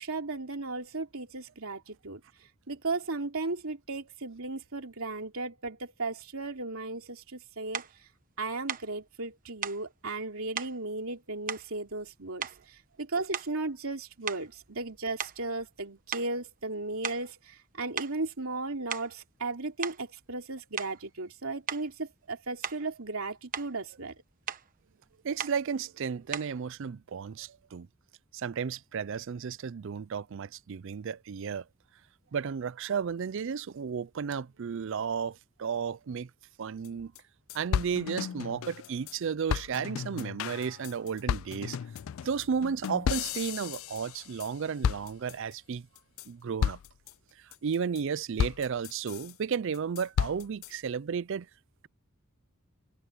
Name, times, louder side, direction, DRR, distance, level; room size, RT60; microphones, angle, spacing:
voice 1, 0.0-2.2 2.7-7.8 8.4-24.1, right 3 dB, 75° right, 3.0 m, -35 dB
sound 1, 7.7-8.0 8.7-8.9 9.6-9.9 10.6-10.8 11.5-12.1 12.4-12.8 13.3-13.7 14.3-15.8 16.1-16.3 17.0-17.3 18.0-18.2 18.7-19.2 19.8-20.0 20.8-21.0 21.7-21.9 22.6-22.9 23.3-23.7 24.5-24.7 25.4-25.6 26.3-26.6, right 7 dB, 40° right, 1.1 m, -37 dB
voice 2, 25.2-27.9 28.3-31.6 32.3-36.3 36.6-37.1 37.5-41.8 42.2-45.9 46.3-46.8 47.6-51.5, right 6 dB, 60° right, 0.4 m, -33 dB
sound 2, 36.8-36.9 37.2-37.3 37.5-39.2 39.5-44.5 44.8-45.5 46.0-46.3 46.6-47.1 47.5-48.0 48.4-49.3 49.7-50.7, left 8 dB, 65° left, 0.3 m, -33 dB
head